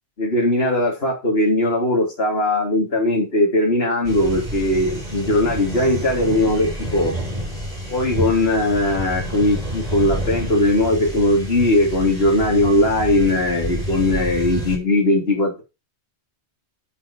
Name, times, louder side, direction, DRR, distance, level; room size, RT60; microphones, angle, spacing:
voice 1, 0.2-7.1 7.9-15.6, left 1 dB, 65° left, -1 dB, 3.3 m, -19 dB
sound 1, 4.0-14.8, equal, 35° right, 4.3 m, -29 dB
9.4 x 9.2 x 5.2 m, 0.28 s
omnidirectional pair, 1.1 m